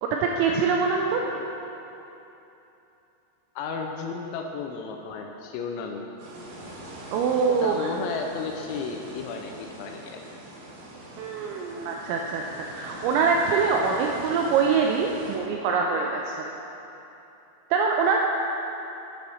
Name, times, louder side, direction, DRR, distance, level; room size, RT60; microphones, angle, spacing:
voice 1, 0.0-1.2 7.1-7.9 11.2-12.4 12.7-16.4 17.7-18.2, right 5 dB, 85° right, 0 dB, 2.6 m, -24 dB
voice 2, 3.6-6.0 7.5-10.2, left 5 dB, 85° left, 2 dB, 2.8 m, -34 dB
sound 1, 6.2-15.4, right 1 dB, 70° right, 2.1 m, -42 dB
10.0 x 4.1 x 6.3 m, 3.0 s
omnidirectional pair, 5.6 m